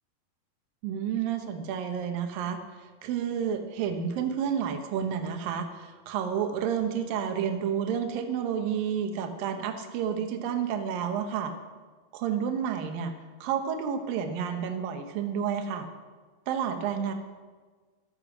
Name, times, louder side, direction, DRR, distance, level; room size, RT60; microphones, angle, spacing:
voice 1, 0.8-2.6 3.0-11.5 12.1-13.1 13.4-15.9 16.5-17.1, right 8 dB, 70° right, 6 dB, 2.8 m, -30 dB
14.5 x 12.5 x 6.2 m, 1.4 s
omnidirectional pair, 4.4 m